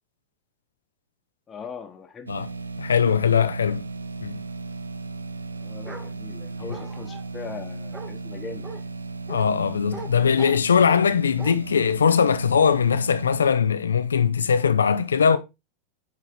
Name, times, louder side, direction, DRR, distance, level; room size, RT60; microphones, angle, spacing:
voice 1, 1.5-2.3 5.6-8.9, left 5 dB, 20° left, 1.2 m, -40 dB
sound 1, 2.3-13.5, right 3 dB, 75° right, 0.5 m, -36 dB
voice 2, 2.8-3.8 4.2-4.4 9.3-15.4, left 7 dB, 70° left, 0.5 m, -20 dB
Bark, 5.8-6.1 6.7-7.2 7.9-8.1 8.6-8.8 9.3-9.5 9.9-10.1 10.4-11.0 11.4-11.5, right 2 dB, 15° right, 1.4 m, -39 dB
9.3 x 4.0 x 4.5 m
figure-of-eight pair, 90°, 0 cm